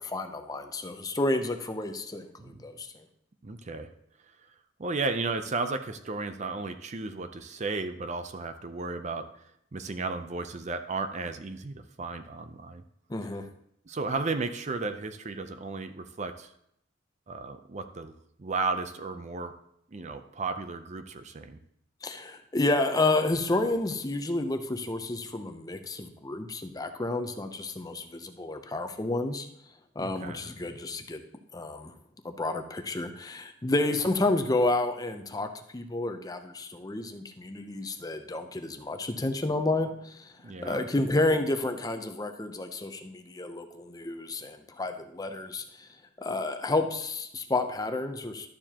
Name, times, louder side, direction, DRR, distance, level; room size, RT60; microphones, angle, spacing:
voice 1, 0.0-3.0 13.1-13.5 22.0-29.5 30.0-31.2 31.5-31.9 32.2-40.3 40.6-45.9 46.2-48.5, left 2 dB, 20° left, 6 dB, 0.6 m, -30 dB
voice 2, 3.4-3.9 4.8-9.3 9.7-12.8 13.9-16.5 17.3-18.1 18.4-19.5 19.9-21.6 30.0-30.4 40.4-40.8, right 3 dB, 35° right, 9 dB, 0.5 m, -34 dB
12.0 x 6.9 x 2.9 m, 0.72 s
head